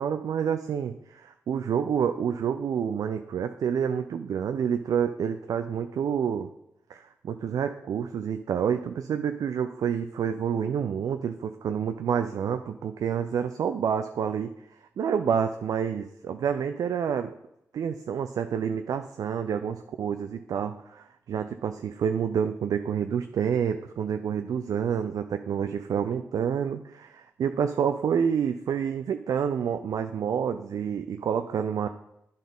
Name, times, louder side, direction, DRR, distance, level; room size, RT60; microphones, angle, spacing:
voice 1, 0.0-6.5 6.9-14.5 15.0-17.3 17.7-31.9, right 7 dB, 75° right, 8 dB, 0.4 m, -28 dB
10.0 x 4.0 x 5.4 m, 0.83 s
supercardioid pair, 45°, 6 cm